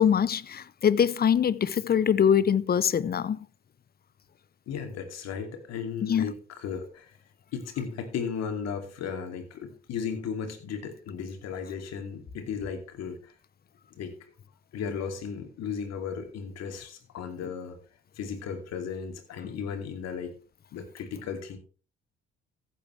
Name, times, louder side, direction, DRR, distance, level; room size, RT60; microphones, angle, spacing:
voice 1, 0.0-3.4 6.0-6.3, left 8 dB, 35° left, 0.7 m, -23 dB
voice 2, 4.7-7.2 7.5-13.3 13.9-14.1 14.7-17.8 18.2-20.3 20.7-21.6, left 6 dB, 60° left, 2.6 m, -35 dB
15.0 x 8.5 x 3.3 m
hypercardioid pair, 50°, 29 cm